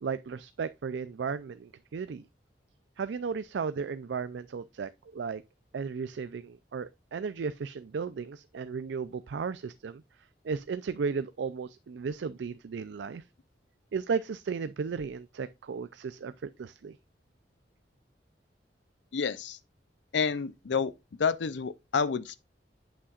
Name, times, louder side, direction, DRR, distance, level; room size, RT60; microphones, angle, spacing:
voice 1, 0.0-2.2 3.0-5.4 5.7-10.0 10.4-13.2 13.9-17.0, right 5 dB, 85° right, 0.4 m, -35 dB
voice 2, 19.1-19.6 20.1-20.9 21.2-22.4, left 5 dB, 90° left, 0.5 m, -29 dB
8.5 x 7.5 x 2.4 m
head